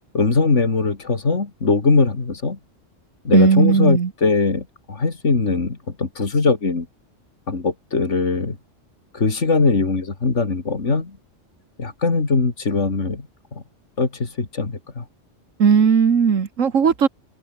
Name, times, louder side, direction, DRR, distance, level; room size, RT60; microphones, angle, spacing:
voice 1, 0.1-2.6 3.2-6.9 7.5-8.6 9.1-11.2 11.8-13.3 13.5-13.6 14.0-15.0, left 4 dB, 65° left, 3.0 m, -21 dB
voice 2, 3.3-4.1 15.6-17.1, right 6 dB, 75° right, 1.9 m, -16 dB
omnidirectional pair, 1.3 m